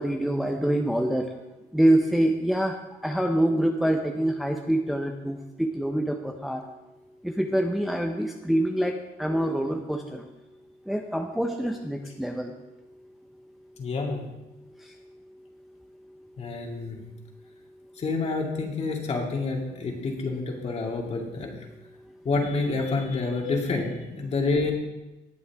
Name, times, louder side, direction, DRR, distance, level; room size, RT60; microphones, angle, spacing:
voice 1, 0.0-1.3 1.7-2.8 3.0-6.6 7.2-10.3 10.9-12.5, right 1 dB, ahead, 2 dB, 0.9 m, -25 dB
voice 2, 13.8-14.2 16.4-17.0 18.0-21.5 22.2-24.7, left 3 dB, 40° left, 0 dB, 2.5 m, -28 dB
19.5 x 7.0 x 3.6 m, 1.0 s
cardioid pair, 110°, 17 cm